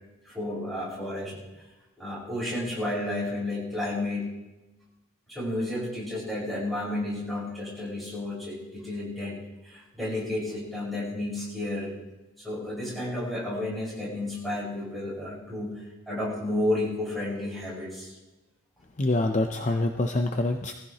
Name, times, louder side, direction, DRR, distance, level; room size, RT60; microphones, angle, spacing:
voice 1, 0.3-1.4 2.0-4.3 5.3-9.4 9.6-11.9 12.4-15.7 16.1-18.1, left 1 dB, ahead, -8 dB, 6.4 m, -31 dB
voice 2, 19.0-20.7, left 2 dB, 35° left, 4 dB, 0.6 m, -25 dB
21.0 x 15.0 x 3.0 m, 1.1 s
head